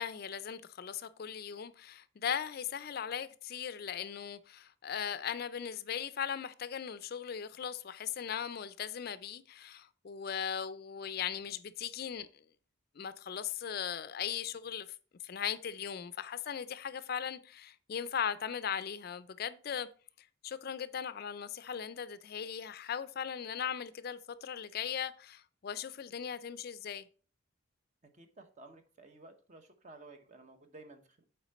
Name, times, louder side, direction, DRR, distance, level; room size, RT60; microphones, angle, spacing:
voice 1, 0.0-12.3 13.0-14.9 15.2-19.9 20.4-27.1, left 8 dB, 50° left, 0.4 m, -38 dB
voice 2, 28.1-31.3, right 2 dB, 35° right, 0.9 m, -54 dB
8.1 x 4.5 x 4.1 m
head